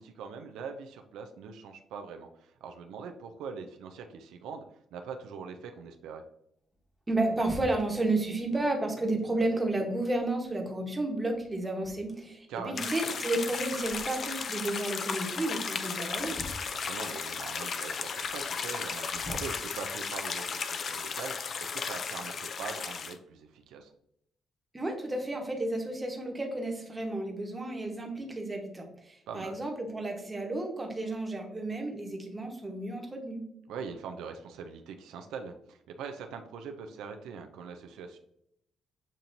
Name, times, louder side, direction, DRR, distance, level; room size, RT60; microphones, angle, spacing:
voice 1, 0.0-4.6 4.9-6.2 12.5-12.9 16.7-23.9 29.3-29.6 33.7-38.2, right 6 dB, 90° right, 5 dB, 0.4 m, -42 dB
sound 1, 6.7-8.5 9.2-10.6 11.0-11.1 11.3-12.9 13.3-14.5 14.8-15.3 15.8-17.3 17.7-17.8 18.2-18.6 19.1-20.3 20.6-22.4 22.7-22.8, left 1 dB, 10° left, 1.1 m, -49 dB
voice 2, 7.1-16.5 24.7-33.4, right 2 dB, 20° right, 2 dB, 1.1 m, -32 dB
sound 2, 12.8-23.1, left 5 dB, 50° left, 0.4 m, -35 dB
7.3 x 2.8 x 2.6 m, 0.75 s
cardioid pair, 90°, 0 cm